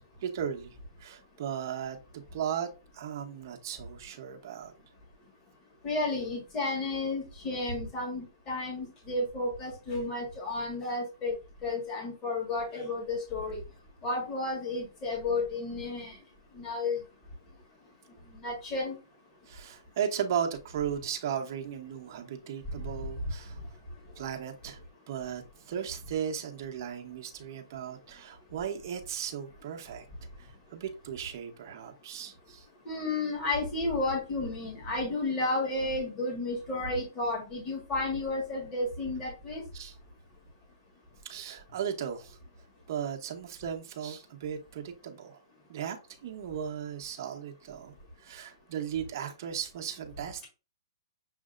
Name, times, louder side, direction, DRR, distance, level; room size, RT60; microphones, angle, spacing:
voice 1, 0.2-0.7 1.0-4.7 19.5-23.6 24.2-24.8 25.1-30.0 30.4-32.6 39.7-39.9 41.2-42.4 42.9-45.4 45.7-46.0 46.2-47.9 48.2-50.5, right 8 dB, 45° right, 4 dB, 0.9 m, -36 dB
voice 2, 5.8-11.3 11.6-13.6 14.0-16.2 16.5-17.0 18.4-19.0 32.8-39.6, left 2 dB, 20° left, -1 dB, 1.6 m, -32 dB
6.4 x 2.7 x 2.5 m, 0.31 s
hypercardioid pair, 155°, 2 cm